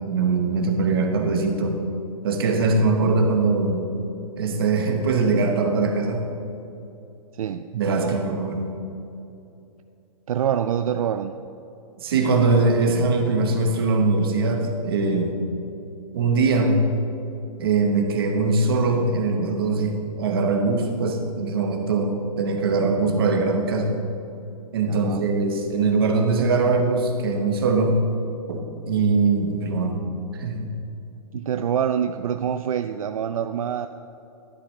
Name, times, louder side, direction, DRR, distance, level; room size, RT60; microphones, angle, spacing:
voice 1, 0.0-1.8 2.2-3.8 4.4-6.2 7.7-8.8 12.0-15.4 16.1-16.9 17.6-23.9 24.7-28.0 28.5-30.0 30.4-30.7, right 3 dB, 40° right, 3 dB, 1.2 m, -22 dB
voice 2, 7.3-8.2 10.3-11.3 24.9-25.3 31.3-33.9, right 9 dB, 70° right, 9 dB, 0.4 m, -26 dB
11.5 x 9.7 x 3.2 m, 2.8 s
hypercardioid pair, 180°, 19 cm